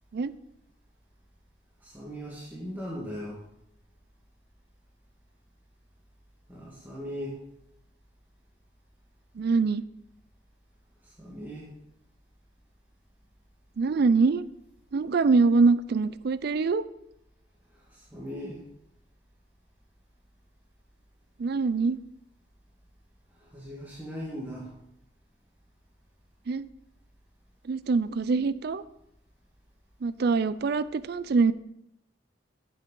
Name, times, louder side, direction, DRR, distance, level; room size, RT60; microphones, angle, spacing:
voice 1, 1.8-3.4 6.5-7.4 11.0-11.7 17.7-18.6 23.4-24.7, equal, 10° right, -6 dB, 1.6 m, -39 dB
voice 2, 9.4-9.8 13.8-14.5 14.9-16.8 21.4-22.0 26.5-26.6 27.7-28.8 30.0-31.5, right 4 dB, 55° right, 16 dB, 0.4 m, -24 dB
10.5 x 7.2 x 3.8 m, 0.81 s
head